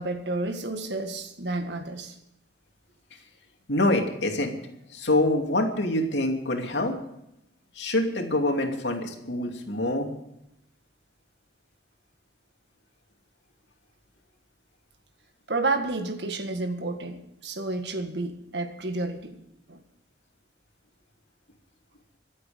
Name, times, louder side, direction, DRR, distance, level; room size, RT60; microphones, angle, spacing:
voice 1, 0.0-2.2 15.5-19.4 19.7-19.8, right 2 dB, 75° right, 7 dB, 1.8 m, -30 dB
voice 2, 3.7-4.6 4.9-6.9 7.7-10.1, left 1 dB, 80° left, 3 dB, 2.7 m, -25 dB
25.5 x 8.6 x 5.2 m, 0.83 s
head